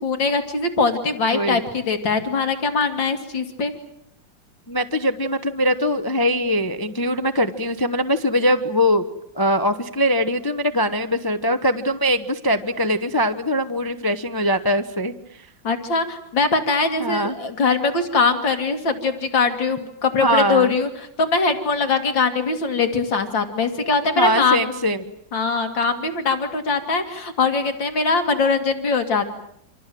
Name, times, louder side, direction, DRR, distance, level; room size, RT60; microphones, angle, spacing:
voice 1, 0.0-3.7 15.6-24.6 25.3-29.3, left 4 dB, 75° left, 6 dB, 2.9 m, -22 dB
voice 2, 1.3-1.6 4.7-9.0 9.3-15.1 17.0-17.4 20.2-20.8 24.2-25.1, equal, 15° left, 9 dB, 0.8 m, -21 dB
29.5 x 26.0 x 7.7 m, 0.71 s
omnidirectional pair, 2.0 m